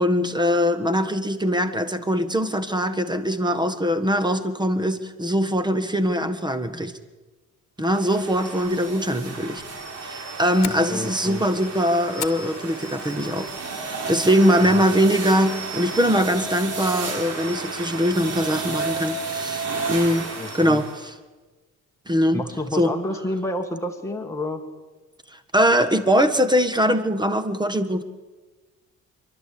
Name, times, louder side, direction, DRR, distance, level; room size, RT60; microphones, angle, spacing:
voice 1, 0.0-6.9 7.8-9.6 10.0-13.5 13.8-20.3 20.5-21.1 22.1-22.4 22.7-22.9 25.3-28.0, equal, 15° right, 11 dB, 1.5 m, -22 dB
sound 1, 7.8-21.1, right 3 dB, 55° right, 3.8 m, -32 dB
Fire, 10.0-13.6 14.0-14.4 14.8-14.9 15.4-15.8, left 11 dB, 65° left, 1.3 m, -38 dB
voice 2, 10.9-11.5 14.6-14.8 20.4-20.8 22.3-24.6, left 1 dB, 10° left, 2 dB, 1.8 m, -29 dB
27.0 x 11.5 x 8.6 m, 1.2 s
cardioid pair, 90°, 30 cm